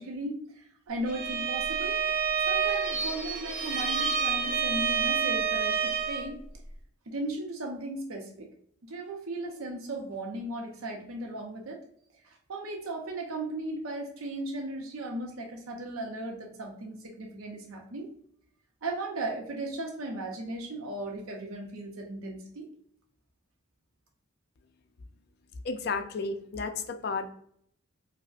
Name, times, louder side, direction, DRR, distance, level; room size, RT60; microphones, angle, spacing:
voice 1, 0.0-2.0 2.5-6.4 7.1-8.5 8.8-11.8 12.2-18.1 18.8-22.7, right 2 dB, 90° right, 1 dB, 0.6 m, -36 dB
Bowed string instrument, 1.0-6.3, right 6 dB, 40° right, 0.6 m, -28 dB
voice 2, 25.6-27.3, left 4 dB, 50° left, 8 dB, 0.3 m, -32 dB
4.8 x 2.0 x 2.4 m, 0.67 s
head